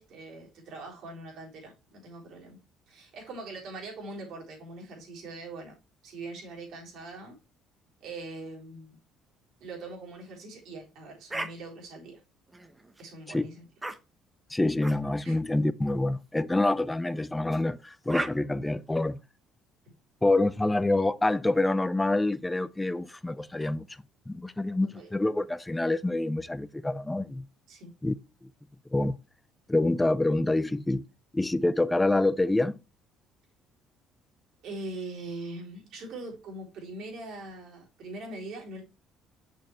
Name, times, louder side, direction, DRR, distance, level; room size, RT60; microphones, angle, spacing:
voice 1, 0.0-2.6 2.9-5.8 6.0-7.4 8.0-9.0 9.6-12.2 13.0-13.6 15.2-15.4 19.8-19.9 24.9-25.1 27.7-27.9 34.6-38.8, right 2 dB, 70° right, 3.7 m, -42 dB
sound 1, 11.3-11.5 12.5-13.0 13.8-14.0 14.8-15.0 15.8-16.0 17.5-17.6 18.1-18.3, right 2 dB, 15° right, 0.9 m, -35 dB
voice 2, 14.5-19.2 20.2-23.9 24.3-27.5 28.0-28.2 28.9-29.2 29.7-31.0 31.3-32.8, left 2 dB, 10° left, 0.5 m, -26 dB
6.5 x 6.3 x 3.1 m
cardioid pair, 100°, 0 cm